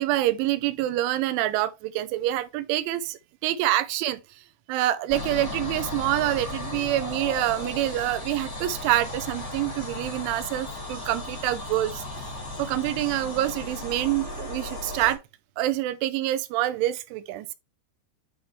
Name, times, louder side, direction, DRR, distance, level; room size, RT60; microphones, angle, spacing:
voice 1, 0.0-4.2 4.7-12.2 12.6-15.2 15.6-17.5, right 14 dB, 80° right, 3.0 m, -26 dB
sound 1, 5.1-15.2, left 1 dB, 10° left, 1.3 m, -35 dB
10.0 x 3.7 x 3.1 m
omnidirectional pair, 5.7 m